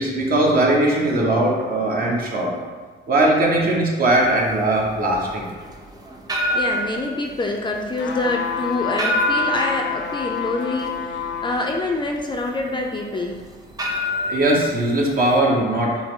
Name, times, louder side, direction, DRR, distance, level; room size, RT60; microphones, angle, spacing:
voice 1, 0.0-2.6 3.1-5.5 14.3-16.0, right 1 dB, 50° right, -2 dB, 1.1 m, -19 dB
sound 1, 4.0-15.4, equal, 20° right, 0.6 m, -28 dB
voice 2, 6.5-13.4, left 2 dB, 25° left, 1 dB, 0.5 m, -26 dB
sound 2, 8.0-11.6 12.2-12.3, left 7 dB, 75° left, 0.6 m, -28 dB
5.9 x 2.1 x 3.7 m, 1.4 s
cardioid pair, 90°, 20 cm